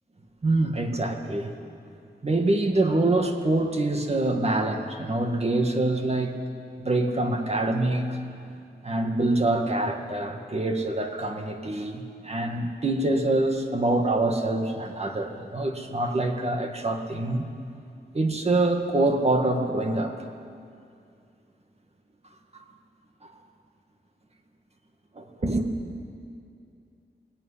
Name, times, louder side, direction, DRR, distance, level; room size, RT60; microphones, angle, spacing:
voice 1, 0.4-1.5 2.2-6.3 6.8-8.2 8.8-17.5 18.1-20.3 25.2-25.7, right 2 dB, 35° right, 4 dB, 1.9 m, -25 dB
20.0 x 17.0 x 10.0 m, 2.4 s
wide cardioid pair, 125°, 17 cm